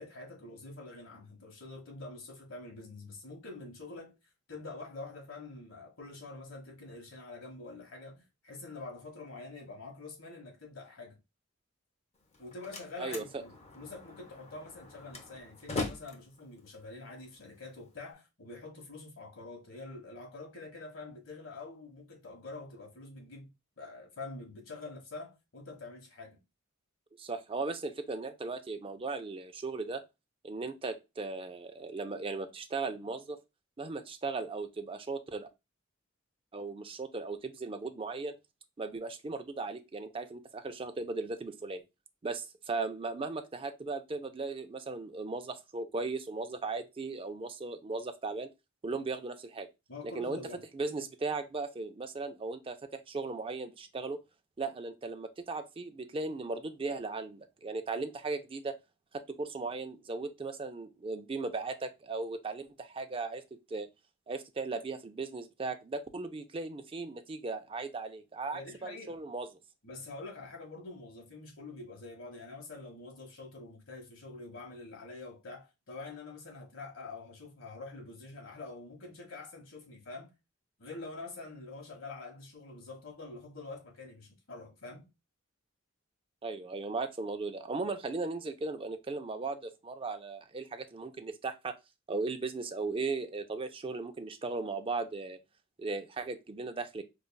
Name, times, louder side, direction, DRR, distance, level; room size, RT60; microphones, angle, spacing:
voice 1, 0.0-4.1 4.5-11.2 12.4-23.5 23.8-26.4 49.9-50.6 68.5-69.2 69.8-80.3 80.8-85.1, left 3 dB, 80° left, 1.2 m, -46 dB
Slam, 12.2-18.1, left 3 dB, 30° left, 0.8 m, -42 dB
voice 2, 13.0-13.4 27.2-30.0 30.4-33.4 33.8-35.5 36.5-38.4 38.8-41.8 42.2-48.5 48.8-49.7 50.1-50.4 50.7-54.2 54.6-58.7 59.1-63.4 63.7-63.9 64.3-69.5 86.4-91.8 92.1-95.4 95.8-97.0, right 3 dB, 25° right, 0.4 m, -37 dB
5.1 x 2.3 x 2.3 m
head